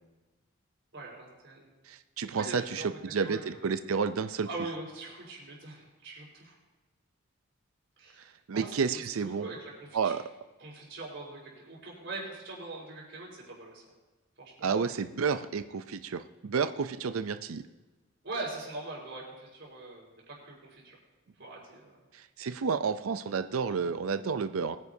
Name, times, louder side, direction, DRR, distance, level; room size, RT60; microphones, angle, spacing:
voice 1, 0.9-1.7 2.3-3.8 4.4-6.6 8.0-10.2 10.6-13.8 14.4-14.9 18.2-21.0 21.4-21.9, right 2 dB, 60° right, -3 dB, 4.6 m, -42 dB
voice 2, 1.9-4.5 8.5-9.5 9.9-10.2 14.6-17.6 22.1-24.8, right 5 dB, 80° right, 10 dB, 0.5 m, -31 dB
21.0 x 9.7 x 2.7 m, 1.2 s
head